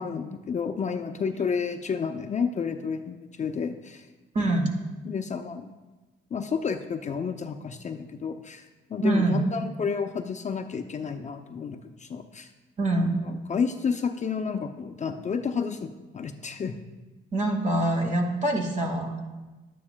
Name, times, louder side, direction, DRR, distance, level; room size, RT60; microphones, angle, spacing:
voice 1, 0.0-4.1 5.1-5.7 6.3-12.5 13.2-16.8, left 6 dB, 35° left, 6 dB, 0.5 m, -31 dB
voice 2, 4.4-4.7 9.0-9.4 12.8-13.2 17.3-19.3, right 1 dB, 40° right, 2 dB, 1.8 m, -24 dB
12.0 x 9.5 x 2.2 m, 1.2 s
cardioid pair, 90°, 20 cm